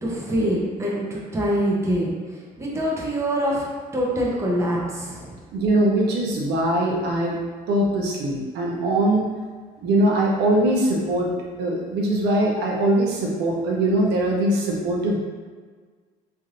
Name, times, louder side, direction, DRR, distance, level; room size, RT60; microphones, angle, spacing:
voice 1, 0.0-3.7 3.9-5.4, equal, 15° right, -5 dB, 0.7 m, -25 dB
voice 2, 5.5-7.4 7.7-9.3 9.8-11.3 11.6-15.2, right 1 dB, 80° right, -2 dB, 0.6 m, -21 dB
3.2 x 2.5 x 2.5 m, 1.5 s
cardioid pair, 110°, 17 cm